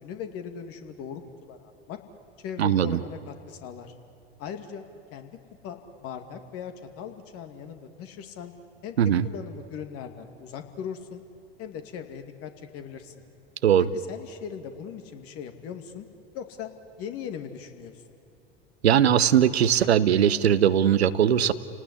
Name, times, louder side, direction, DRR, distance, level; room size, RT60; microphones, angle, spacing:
voice 1, 0.0-2.0 2.4-3.9 4.4-4.8 5.1-5.4 5.6-8.5 8.8-8.9 9.2-11.2 11.6-13.1 13.9-16.1 16.3-16.7 17.0-18.0, left 8 dB, 45° left, 7 dB, 2.5 m, -39 dB
voice 2, 2.6-3.0 9.0-9.3 13.6-13.9 18.8-21.5, right 9 dB, 80° right, 14 dB, 1.0 m, -20 dB
30.0 x 18.5 x 10.0 m, 2.8 s
figure-of-eight pair, 80°, 32 cm